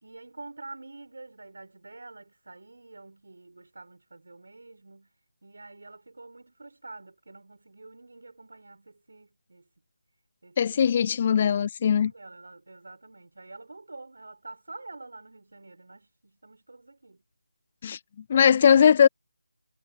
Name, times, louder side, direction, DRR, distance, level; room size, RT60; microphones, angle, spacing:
voice 1, 0.0-5.1 5.4-9.7 10.4-11.1 12.0-17.2, right 2 dB, 65° right, 4.8 m, -47 dB
voice 2, 10.6-12.1 17.8-18.0 18.3-19.1, left 8 dB, 30° left, 0.3 m, -20 dB
figure-of-eight pair, 165°, 0 cm